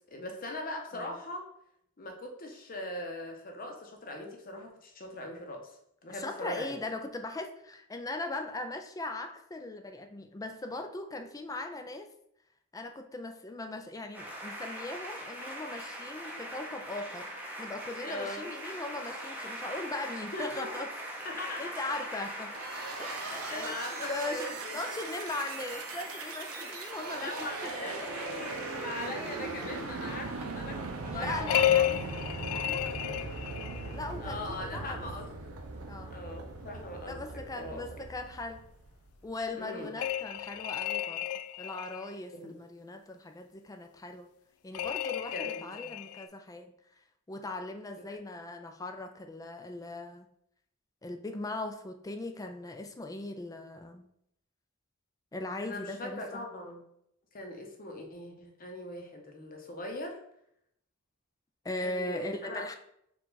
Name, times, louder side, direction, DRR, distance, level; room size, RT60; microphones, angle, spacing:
voice 1, 0.0-1.4 2.0-5.8 6.0-6.8 18.0-18.5 20.3-20.8 21.2-21.7 23.2-24.8 26.6-26.7 27.1-31.9 34.2-35.3 36.1-37.2 37.6-38.0 39.6-40.0 42.3-42.6 45.3-45.9 55.6-56.8 57.3-60.2 61.8-62.8, left 1 dB, 40° left, 3 dB, 0.8 m, -40 dB
voice 2, 6.1-12.1 12.7-20.9 21.3-22.5 23.0-28.1 31.1-33.3 33.9-35.0 35.9-36.2 37.1-38.6 39.2-41.3 41.6-44.3 44.6-46.7 47.3-50.3 51.0-54.1 55.3-56.5 61.6-62.8, left 2 dB, 15° left, 6 dB, 0.4 m, -39 dB
sound 1, 14.1-30.6, equal, 10° right, 0.7 m, -42 dB
sound 2, 22.5-39.2, right 3 dB, 85° right, 0.6 m, -40 dB
sound 3, 31.5-33.9 40.0-42.1 44.7-46.3, left 11 dB, 90° left, 0.3 m, -31 dB
4.6 x 2.4 x 3.9 m, 0.74 s
head